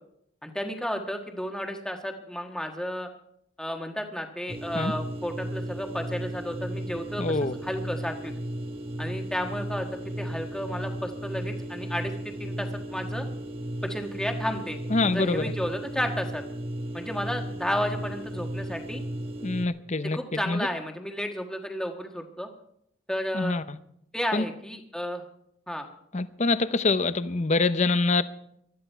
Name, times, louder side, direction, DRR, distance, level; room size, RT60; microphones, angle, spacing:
voice 1, 0.4-3.1 3.6-8.3 9.0-9.9 10.2-13.3 13.8-16.4 16.9-19.0 20.1-22.5 23.1-23.6 24.1-25.2 25.7-25.9, equal, 5° left, 1.4 m, -32 dB
sound 1, 4.5-19.7, right 1 dB, 25° right, 1.1 m, -35 dB
voice 2, 7.2-7.5 14.9-15.4 19.4-20.2 20.5-20.6 23.3-23.8 24.3-24.4 26.1-28.2, left 3 dB, 35° left, 0.6 m, -25 dB
19.0 x 13.0 x 4.5 m
head